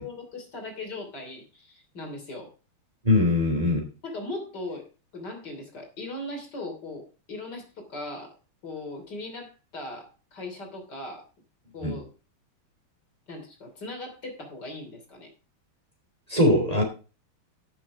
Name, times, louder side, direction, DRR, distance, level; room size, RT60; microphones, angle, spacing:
voice 1, 0.0-2.5 4.0-4.9 5.1-8.3 8.6-11.3 11.7-12.1 13.3-15.3, left 2 dB, 50° left, 2 dB, 3.6 m, -38 dB
voice 2, 3.0-3.9 11.8-12.0 16.3-16.8, left 1 dB, 15° right, 2 dB, 3.1 m, -21 dB
16.0 x 6.8 x 3.5 m, 0.33 s
omnidirectional pair, 2.4 m